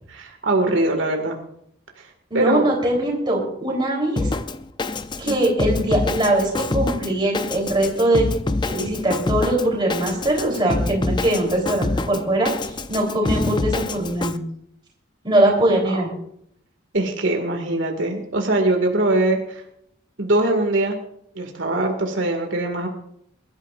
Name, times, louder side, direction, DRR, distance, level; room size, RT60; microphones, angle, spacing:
voice 1, 0.1-1.4 2.3-2.7 5.3-5.4 15.7-15.8 16.9-19.6 20.2-21.0 21.4-22.9, right 2 dB, 80° right, 2 dB, 2.1 m, -22 dB
voice 2, 2.3-4.3 5.2-8.3 8.6-12.5 12.9-14.4 15.2-16.1, right 1 dB, 25° right, -2 dB, 3.6 m, -21 dB
Drum kit, 4.2-14.4, left 2 dB, 25° left, 0.4 m, -26 dB
23.5 x 12.5 x 2.5 m, 0.73 s
head